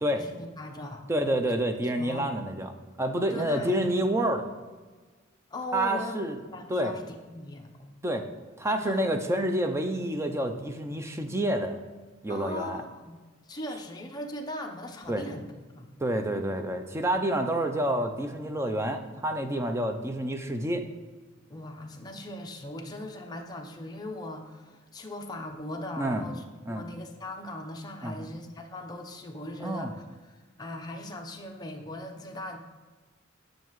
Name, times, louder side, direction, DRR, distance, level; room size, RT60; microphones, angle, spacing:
voice 1, 0.2-1.0 2.0-2.3 3.3-3.9 5.5-6.2 6.5-7.9 8.6-9.1 12.3-15.5 15.7-15.9 21.5-32.6, left 1 dB, 20° left, 2 dB, 0.7 m, -39 dB
voice 2, 1.1-2.7 3.0-4.5 5.7-6.4 6.7-7.0 8.0-8.3 8.6-11.8 12.2-12.8 15.1-15.2 16.0-20.8 26.0-26.2 26.7-26.8 28.0-28.3 29.6-29.9, right 1 dB, 15° right, 6 dB, 0.5 m, -28 dB
9.1 x 6.5 x 3.1 m, 1.4 s
head